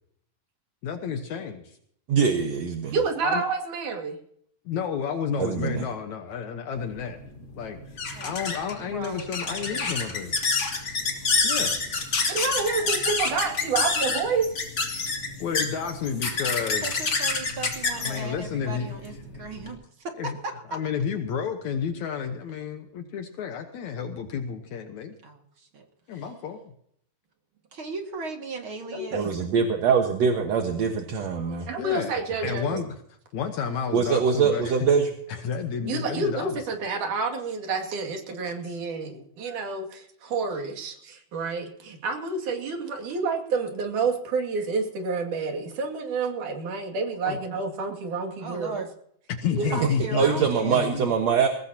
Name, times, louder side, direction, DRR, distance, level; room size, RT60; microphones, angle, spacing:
voice 1, 0.8-1.8 3.2-3.4 4.7-7.2 7.6-7.8 8.2-10.4 11.4-11.8 15.4-17.0 18.0-18.9 19.3-19.5 20.2-20.4 20.7-25.1 26.1-26.7 31.8-32.1 32.4-33.0 33.3-34.7 35.3-36.7 38.6-38.8 47.2-47.4 49.3-51.1, left 7 dB, 70° left, 6 dB, 2.4 m, -31 dB
voice 2, 2.1-3.0 5.4-5.9 29.1-31.7 32.7-32.8 33.9-35.1 50.1-51.5, right 6 dB, 60° right, 3 dB, 2.5 m, -23 dB
voice 3, 2.9-4.2 12.3-14.5 28.9-29.3 31.7-32.7 35.8-48.8 49.6-49.9, right 4 dB, 80° right, 3 dB, 3.9 m, -29 dB
sound 1, 6.8-19.7, left 4 dB, 40° left, 3.4 m, -28 dB
voice 4, 8.8-9.8 11.0-11.3 16.8-20.8 25.2-25.8 26.1-26.3 27.7-29.3 48.4-48.9 49.7-50.8, right 3 dB, 45° right, 3 dB, 2.7 m, -37 dB
21.5 x 19.0 x 2.9 m, 0.68 s
omnidirectional pair, 3.5 m